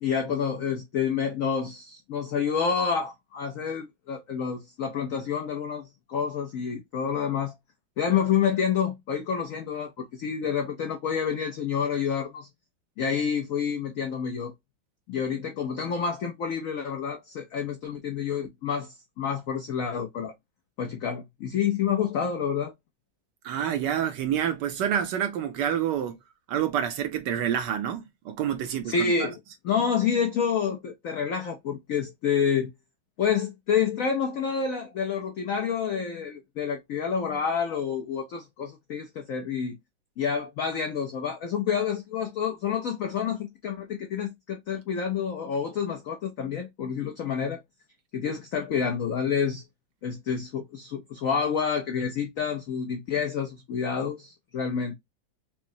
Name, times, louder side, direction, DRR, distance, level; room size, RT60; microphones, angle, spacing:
voice 1, 0.0-7.6 8.0-12.5 13.0-14.5 15.1-20.3 20.8-22.7 28.9-29.4 29.6-32.7 33.2-39.8 40.2-47.6 48.1-49.6 50.0-55.0, left 7 dB, 80° left, 0.7 m, -28 dB
voice 2, 23.4-26.2 26.5-29.3, right 9 dB, 75° right, 1.1 m, -28 dB
5.6 x 2.0 x 2.6 m
omnidirectional pair, 2.2 m